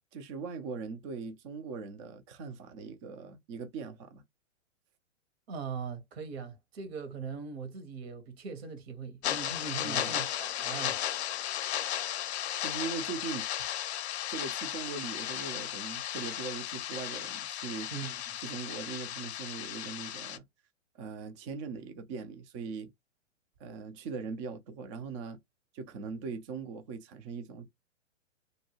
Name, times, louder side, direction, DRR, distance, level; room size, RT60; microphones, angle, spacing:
voice 1, 0.1-4.2 9.8-10.2 12.6-13.5 14.3-17.9 18.4-20.4 21.0-22.9 23.6-25.4 25.7-27.7, right 5 dB, 25° right, 0.4 m, -40 dB
voice 2, 5.5-11.0 17.9-18.2, right 5 dB, 55° right, 1.2 m, -40 dB
sound 1, 9.2-20.4, left 11 dB, 60° left, 0.5 m, -35 dB
2.6 x 2.2 x 2.9 m
hypercardioid pair, 125°, 38 cm